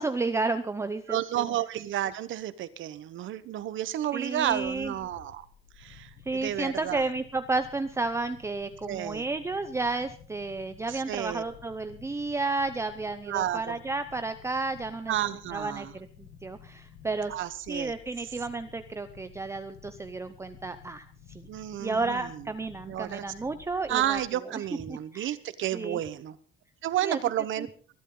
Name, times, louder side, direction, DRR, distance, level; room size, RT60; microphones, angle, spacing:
voice 1, 0.0-1.5 4.1-4.9 6.3-15.1 15.5-17.3 17.7-21.1 21.3-21.5 21.8-24.2 24.5-24.6 24.9-25.4 25.7-26.0 27.0-27.2 27.6-27.7, right 3 dB, 15° right, 9 dB, 0.7 m, -32 dB
voice 2, 1.1-5.4 5.8-7.0 8.8-9.2 10.9-11.4 13.3-13.8 15.1-15.9 17.3-17.9 21.5-22.4 22.9-23.2 23.9-26.4 26.8-27.7, right 12 dB, 70° right, 14 dB, 1.1 m, -31 dB
sound 1, 4.5-24.2, left 7 dB, 65° left, 1.6 m, -53 dB
22.5 x 12.0 x 3.9 m, 0.41 s
cardioid pair, 160°, 21 cm